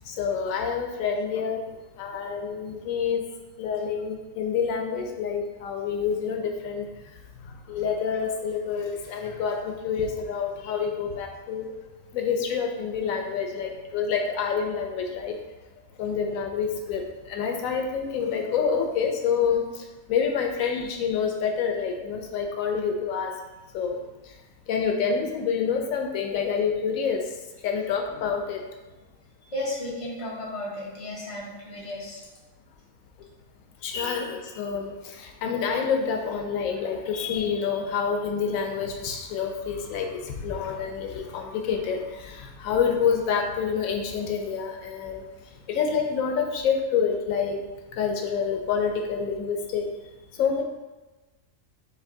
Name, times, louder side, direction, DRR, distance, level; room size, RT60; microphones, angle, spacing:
voice 1, 0.1-1.6 2.0-3.2 3.6-6.9 7.7-9.6 9.8-11.7 12.1-15.3 16.0-19.6 20.1-23.3 23.7-24.0 24.7-27.2 27.6-28.6 33.8-34.9 35.2-40.1 40.4-45.2 45.7-47.6 48.0-49.9 50.4-50.6, left 6 dB, 90° left, 2 dB, 1.0 m, -27 dB
voice 2, 29.5-32.2, left 1 dB, 25° left, -5 dB, 1.0 m, -34 dB
6.4 x 2.7 x 2.6 m, 1.1 s
omnidirectional pair, 1.4 m